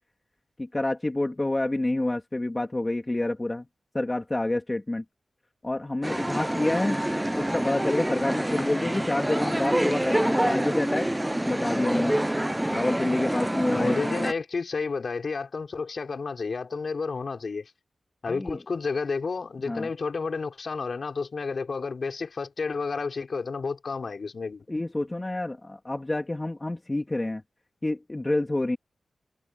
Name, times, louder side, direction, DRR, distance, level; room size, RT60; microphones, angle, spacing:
voice 1, 0.6-3.7 3.9-5.0 5.6-7.0 7.3-11.1 11.5-12.2 12.7-14.0 18.3-18.6 19.6-19.9 24.7-27.4 27.8-28.8, left 2 dB, 25° left, 2.8 m, -28 dB
sound 1, 6.0-14.3, right 1 dB, 10° right, 0.7 m, -27 dB
voice 2, 13.7-17.7 18.2-24.6, left 4 dB, 60° left, 5.8 m, -31 dB
wide cardioid pair, 80°, 0 cm